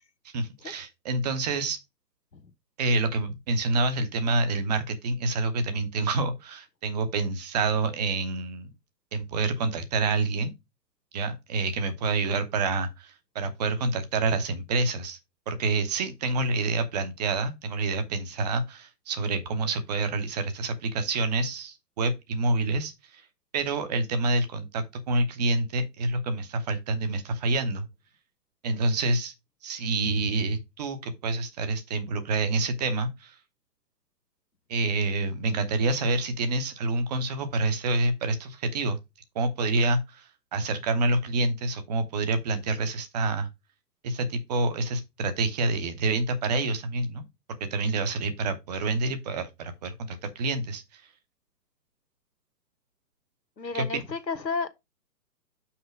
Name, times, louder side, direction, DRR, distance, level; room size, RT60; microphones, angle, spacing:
voice 1, 0.3-1.8 2.8-8.7 9.1-10.5 11.1-15.2 15.5-23.2 23.5-27.9 28.6-29.3 29.6-33.4 34.7-39.0 39.3-43.5 44.0-51.0 53.7-54.0, right 2 dB, 25° right, 0.9 m, -27 dB
voice 2, 53.6-54.7, left 4 dB, 85° left, 1.2 m, -31 dB
5.8 x 5.3 x 5.0 m
figure-of-eight pair, 125°, 49 cm